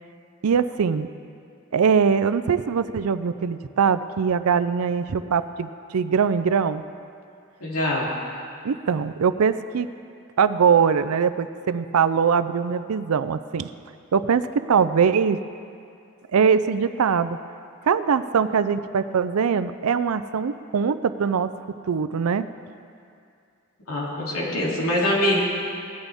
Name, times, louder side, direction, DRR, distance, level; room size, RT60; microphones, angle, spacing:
voice 1, 0.4-1.1 1.7-6.8 8.6-9.9 10.4-13.7 14.1-15.4 16.3-17.4 17.8-21.5 21.9-22.5, right 6 dB, 85° right, 12 dB, 0.5 m, -22 dB
voice 2, 7.6-8.1 23.9-25.4, left 1 dB, 85° left, -5 dB, 3.0 m, -23 dB
18.0 x 13.0 x 3.5 m, 2.4 s
head